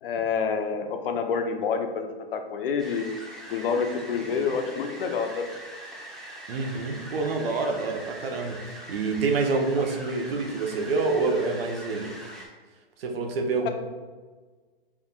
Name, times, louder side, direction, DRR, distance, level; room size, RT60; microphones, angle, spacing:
voice 1, 0.0-3.0 3.5-5.5 13.6-13.7, left 6 dB, 65° left, 5 dB, 0.7 m, -28 dB
sound 1, 2.8-12.5, right 1 dB, ahead, 0.8 m, -42 dB
voice 2, 6.5-12.1 13.0-13.7, right 3 dB, 75° right, 3 dB, 1.0 m, -27 dB
5.7 x 3.7 x 2.4 m, 1.4 s
hypercardioid pair, 130°, 30 cm